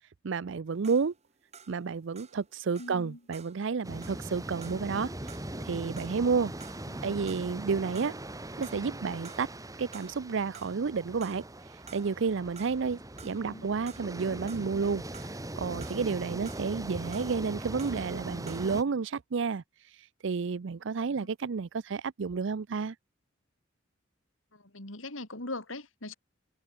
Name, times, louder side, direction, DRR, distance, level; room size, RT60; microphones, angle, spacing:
voice 1, 0.2-1.1 1.7-5.1 5.6-6.5 7.0-8.1 8.6-9.5 9.8-22.9, right 5 dB, 65° right, 0.5 m, -31 dB
sound 1, 0.7-7.7 8.0-9.0 9.2-10.3 10.5-18.9, right 6 dB, 35° right, 4.3 m, -53 dB
voice 2, 2.8-3.2 6.9-7.2 13.2-13.7 21.2-21.3 24.5-26.2, left 2 dB, 85° left, 5.4 m, -41 dB
sound 2, 3.8-18.8, right 1 dB, 20° right, 2.1 m, -41 dB
head